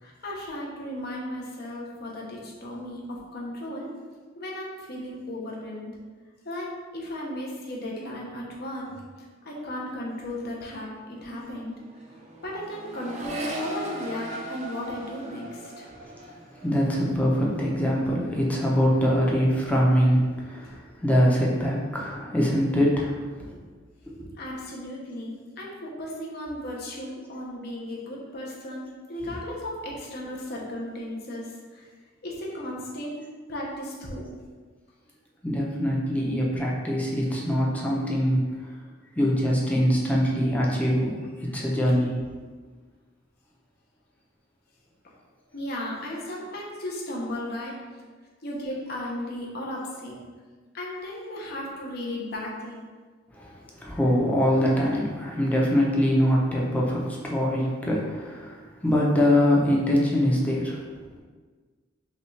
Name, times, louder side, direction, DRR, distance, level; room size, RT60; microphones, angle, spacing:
voice 1, 0.0-3.9 4.3-6.0 6.4-11.7 12.4-15.9 20.6-20.7 24.4-31.9 32.2-33.2 33.5-34.3 41.5-41.9 45.0-45.1 45.5-47.8 48.4-50.2 50.7-52.9, left 1 dB, 55° left, -3 dB, 0.9 m, -35 dB
Accelerating revving vroom, 10.3-10.5 10.7-18.3 18.6-19.2, right 1 dB, 35° right, 0.5 m, -39 dB
voice 2, 16.6-23.6 24.1-24.3 35.4-38.4 39.2-41.1 41.4-42.2 53.3-60.8, equal, 10° left, -4 dB, 0.6 m, -23 dB
5.5 x 2.4 x 3.2 m, 1.5 s
head